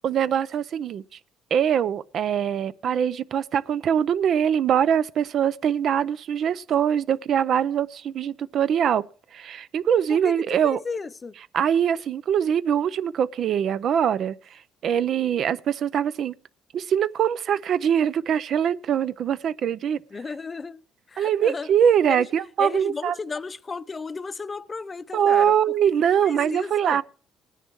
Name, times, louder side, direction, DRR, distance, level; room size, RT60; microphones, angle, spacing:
voice 1, 0.0-1.2 1.5-9.0 9.3-10.8 11.5-16.3 16.7-20.0 21.2-23.1 25.1-27.0, right 8 dB, 55° right, 0.5 m, -23 dB
voice 2, 10.6-11.3 20.1-21.7 22.1-22.3 22.6-25.5 26.2-27.0, left 4 dB, 30° left, 0.5 m, -34 dB
19.0 x 9.9 x 3.0 m
cardioid pair, 105°, 0 cm